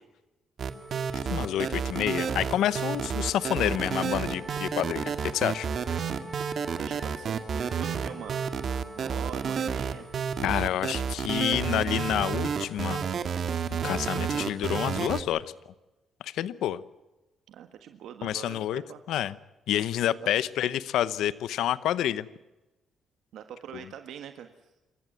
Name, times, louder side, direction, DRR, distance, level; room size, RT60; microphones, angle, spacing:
Wind instrument woodwind instrument, 0.6-11.0, right 2 dB, 10° right, 2.7 m, -45 dB
sound 1, 0.6-15.2, right 7 dB, 55° right, 2.1 m, -30 dB
voice 1, 1.3-5.7 10.4-13.0 13.8-15.4 16.2-16.8 18.2-18.8 19.1-19.4 19.7-22.3, left 12 dB, 80° left, 17 dB, 0.9 m, -28 dB
voice 2, 6.7-8.4 8.9-10.1 10.9-11.0 17.5-19.0 23.3-24.5, right 9 dB, 80° right, 8 dB, 1.6 m, -43 dB
26.5 x 14.5 x 9.3 m, 1.0 s
cardioid pair, 90°, 0 cm